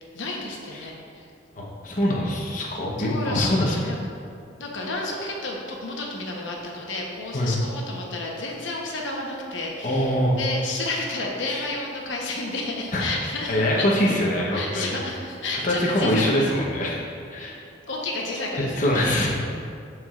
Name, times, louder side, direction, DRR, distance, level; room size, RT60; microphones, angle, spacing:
voice 1, 0.1-1.2 3.0-4.0 4.6-13.9 14.5-16.5 17.9-19.3, left 2 dB, 75° left, -2 dB, 1.0 m, -31 dB
voice 2, 1.5-3.7 7.3-7.6 9.8-10.4 11.5-11.7 12.9-13.1 13.5-14.9 15.5-17.0 17.3-17.6 18.6-19.3, left 1 dB, 45° left, -4 dB, 1.0 m, -24 dB
13.0 x 4.7 x 2.5 m, 2.4 s
head